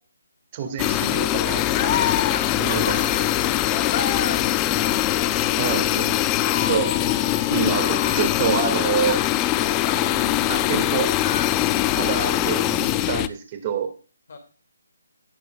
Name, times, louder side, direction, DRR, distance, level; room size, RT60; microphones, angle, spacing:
voice 1, 0.5-2.0 2.6-3.3 5.5-6.2 6.7-6.9 7.5-9.2 10.5-11.4 12.0-13.9, right 6 dB, 25° right, 5 dB, 2.2 m, -27 dB
sound 1, 0.8-13.3, left 14 dB, 15° left, 0.5 m, -22 dB
sound 2, 1.7-10.7 11.1-12.1, left 7 dB, 35° left, 1.6 m, -32 dB
voice 2, 2.8-3.0 11.9-12.1 14.3-14.4, left 4 dB, 55° left, 5 dB, 2.6 m, -46 dB
18.5 x 6.6 x 2.5 m, 0.35 s
hypercardioid pair, 165°, 0 cm